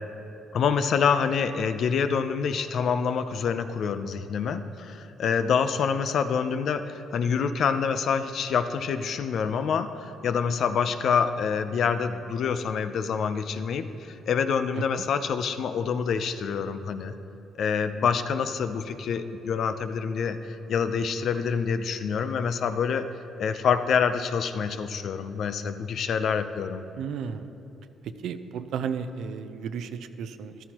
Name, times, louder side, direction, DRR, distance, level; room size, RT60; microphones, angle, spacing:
voice 1, 0.5-17.2 17.5-23.1 23.4-26.8, left 6 dB, 65° left, 10 dB, 0.6 m, -26 dB
voice 2, 27.0-27.5 28.0-30.6, right 7 dB, 80° right, 10 dB, 0.6 m, -33 dB
14.0 x 12.5 x 3.0 m, 2.9 s
cardioid pair, 90°, 0 cm